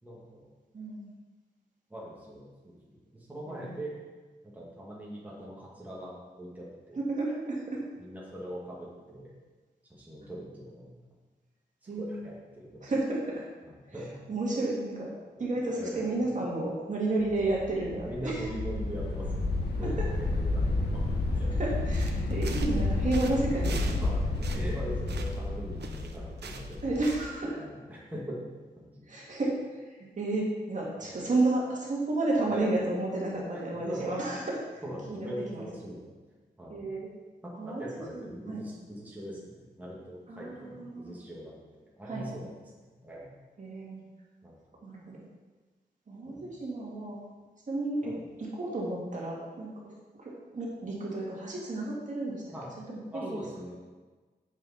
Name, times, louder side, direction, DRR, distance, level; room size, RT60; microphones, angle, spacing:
voice 1, 0.0-0.5 1.9-4.0 4.4-7.0 8.0-9.3 9.9-10.9 12.0-12.9 13.6-14.2 15.8-16.2 17.9-19.4 19.8-21.0 21.3-21.5 24.0-26.8 27.6-28.4 28.8-29.1 31.0-31.2 32.5-32.8 33.5-33.6 33.9-34.5 34.8-36.0 36.6-36.9 37.4-42.5 42.8-43.3 44.4-44.6 46.3-46.5 48.0-48.2 52.5-52.7 53.1-53.7, right 1 dB, 10° right, -5 dB, 2.1 m, -41 dB
voice 2, 0.7-1.1 3.5-3.8 6.9-7.8 11.9-12.2 12.8-13.5 13.9-14.0 14.3-15.1 15.4-18.5 20.0-20.1 21.6-24.0 26.8-27.6 29.1-29.5 29.8-34.6 35.1-35.6 36.7-37.1 37.6-37.8 38.1-38.6 40.3-41.2 42.0-42.3 43.6-44.0 44.8-45.3 46.1-47.2 47.7-49.9 50.2-52.4 52.9-53.3, right 2 dB, 45° right, -4 dB, 2.3 m, -32 dB
sound 1, 17.2-27.2, left 2 dB, 75° left, 1.6 m, -31 dB
sound 2, 21.9-22.9 23.1-24.1 24.3-25.5 25.8-27.4, right 5 dB, 80° right, 0.9 m, -44 dB
9.5 x 7.5 x 4.2 m, 1.3 s
wide cardioid pair, 145°, 17 cm